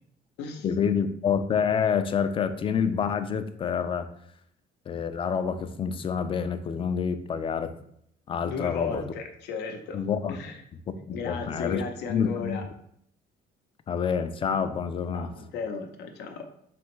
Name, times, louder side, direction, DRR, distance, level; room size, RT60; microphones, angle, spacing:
voice 1, 0.6-4.1 4.9-7.7 8.3-9.1 9.9-10.4 11.1-11.8 12.1-12.6 13.9-15.3, left 7 dB, 30° left, 10 dB, 0.4 m, -27 dB
voice 2, 8.4-10.6 11.1-12.6 15.1-16.5, left 5 dB, 80° left, 5 dB, 0.7 m, -35 dB
4.2 x 3.4 x 3.1 m, 0.71 s
cardioid pair, 110°, 17 cm